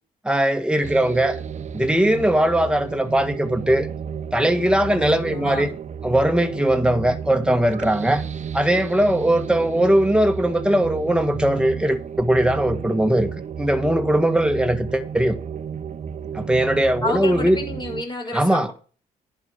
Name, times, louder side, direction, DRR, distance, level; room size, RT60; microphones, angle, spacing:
voice 1, 0.2-1.4 1.7-3.9 4.3-5.7 6.0-8.2 8.5-13.3 13.6-15.4 16.3-17.6 18.3-18.7, right 1 dB, 5° right, 1.7 m, -20 dB
sound 1, 0.8-18.0, right 7 dB, 50° right, 0.9 m, -32 dB
voice 2, 4.9-5.7 17.0-18.7, left 2 dB, 30° left, 6.1 m, -30 dB
10.5 x 5.7 x 6.3 m
cardioid pair, 75°, 16 cm